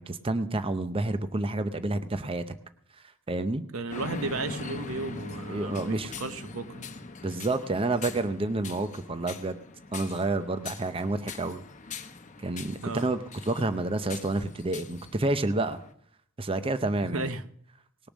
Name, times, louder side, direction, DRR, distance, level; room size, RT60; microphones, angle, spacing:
voice 1, 0.0-2.5 3.3-3.6 5.5-6.1 7.2-9.6 9.9-11.6 12.4-15.8 16.4-17.2, right 2 dB, 25° right, 11 dB, 0.6 m, -29 dB
voice 2, 3.7-6.9 12.8-13.1 17.0-17.4, right 3 dB, 80° right, 12 dB, 0.9 m, -34 dB
sound 1, 3.9-15.9, left 4 dB, 35° left, 0.9 m, -42 dB
19.0 x 6.9 x 6.2 m, 0.66 s
head